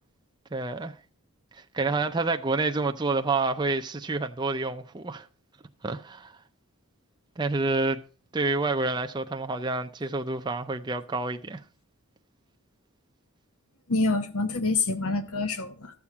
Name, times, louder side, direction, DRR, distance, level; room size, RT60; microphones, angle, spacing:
voice 1, 0.5-0.9 1.5-5.3 5.8-6.3 7.4-8.0 8.3-11.6, right 3 dB, 20° right, 0.5 m, -28 dB
voice 2, 13.9-15.9, left 3 dB, 75° left, 1.0 m, -26 dB
13.0 x 7.2 x 4.8 m
head